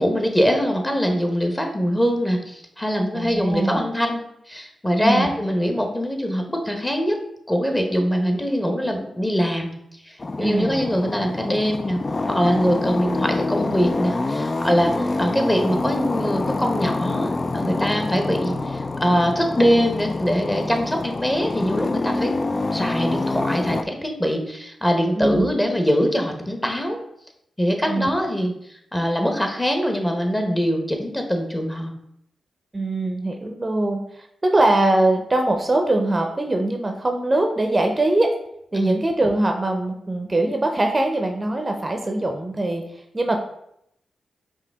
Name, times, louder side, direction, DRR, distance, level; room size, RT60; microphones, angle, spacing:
voice 1, 0.0-7.2 7.5-9.7 10.0-12.0 12.3-22.3 22.7-27.0 27.6-28.5 28.9-31.9 38.7-39.0, equal, 15° left, 3 dB, 1.0 m, -23 dB
voice 2, 3.1-3.8 5.0-5.3 10.4-10.8 25.2-25.5 27.9-28.1 32.7-38.3 38.7-42.8 43.1-43.4, right 2 dB, 30° right, 4 dB, 0.6 m, -22 dB
sound 1, 10.2-23.8, left 2 dB, 40° left, 0.3 m, -26 dB
4.8 x 2.8 x 3.4 m, 0.75 s
supercardioid pair, 40°, 0 cm